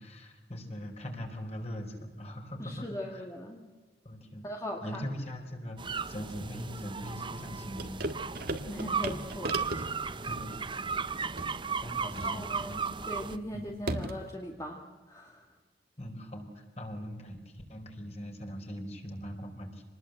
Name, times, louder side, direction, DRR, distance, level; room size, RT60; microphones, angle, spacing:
voice 1, 0.0-3.2 4.0-4.4 4.8-8.0 8.5-8.6 10.3-10.6 11.8-12.8 13.5-13.6 16.0-19.8, equal, 35° left, 3 dB, 4.4 m, -41 dB
voice 2, 2.6-3.6 4.4-5.0 8.7-10.1 12.0-15.5, equal, 15° left, 0 dB, 2.1 m, -40 dB
sound 1, 5.8-13.4, right 5 dB, 25° right, 0.7 m, -36 dB
sound 2, 7.8-14.3, right 2 dB, 55° right, 1.8 m, -39 dB
27.0 x 20.0 x 8.0 m, 1.3 s
head